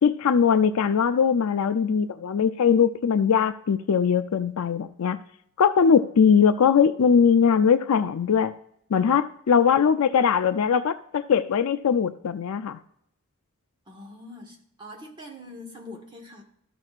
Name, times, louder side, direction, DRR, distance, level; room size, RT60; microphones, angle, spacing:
voice 1, 0.0-5.2 5.6-8.5 8.9-12.8, left 6 dB, 75° left, 10 dB, 0.4 m, -21 dB
voice 2, 13.9-16.4, left 1 dB, 20° right, 1 dB, 1.4 m, -43 dB
13.5 x 6.1 x 2.4 m, 0.72 s
head